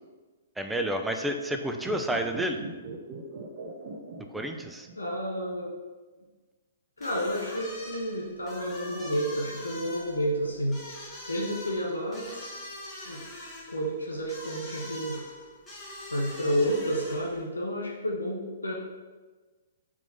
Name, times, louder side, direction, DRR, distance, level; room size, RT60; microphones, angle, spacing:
voice 1, 0.6-2.6 4.3-4.9, right 1 dB, 5° right, 5 dB, 0.5 m, -30 dB
sound 1, 1.7-5.2 5.4-5.5, right 3 dB, 40° right, 1.1 m, -41 dB
voice 2, 5.0-5.7 7.0-10.8 11.3-12.7 13.1-13.2 13.7-15.2 16.1-18.7, equal, 80° left, -2 dB, 1.0 m, -30 dB
sound 2, 7.0-17.4, left 1 dB, 15° left, 1.8 m, -43 dB
4.4 x 4.4 x 5.8 m, 1.3 s
figure-of-eight pair, 115°, 0 cm